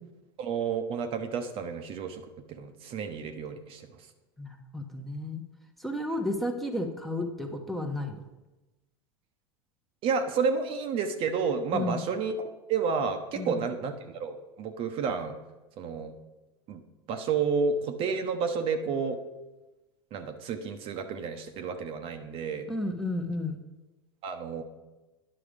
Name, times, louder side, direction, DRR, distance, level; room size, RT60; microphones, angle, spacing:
voice 1, 0.4-2.2 2.5-3.9 10.0-15.3 15.8-16.1 16.7-16.8 17.1-19.2 20.1-22.7 24.2-24.6, right 5 dB, 45° right, 6 dB, 0.9 m, -30 dB
voice 2, 4.4-5.4 5.8-8.2 11.7-12.0 13.3-13.6 22.7-23.6, left 1 dB, ahead, 2 dB, 1.1 m, -32 dB
9.8 x 5.9 x 5.1 m, 1.1 s
hypercardioid pair, 95°, 13 cm